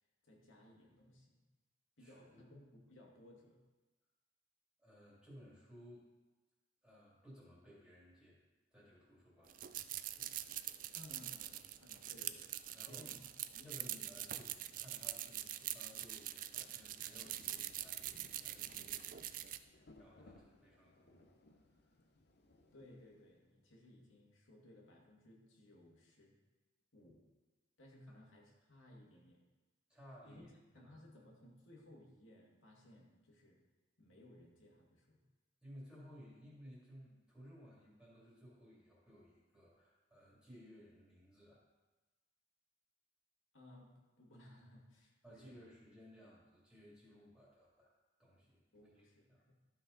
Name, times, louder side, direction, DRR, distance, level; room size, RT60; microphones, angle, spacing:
voice 1, 0.2-1.4 2.0-3.6 10.9-12.5 12.8-13.3 13.5-13.9 14.7-14.8 22.7-26.4 26.9-27.2 27.8-29.4 30.2-30.5 30.7-33.6 34.0-35.2 43.5-45.6 48.7-49.5, left 1 dB, 85° left, -2 dB, 2.0 m, -60 dB
voice 2, 2.0-2.5 4.8-6.1 6.8-8.4 8.7-9.6 10.1-10.4 12.7-13.1 13.6-21.2 29.9-30.5 30.7-30.9 35.6-41.6 45.2-47.9 48.2-49.4, equal, 5° right, -7 dB, 2.3 m, -59 dB
sound 1, 9.5-19.6, right 13 dB, 45° right, 0.3 m, -44 dB
Rain, 16.4-23.5, left 2 dB, 55° left, 0.8 m, -65 dB
12.5 x 5.8 x 3.9 m, 1.2 s
head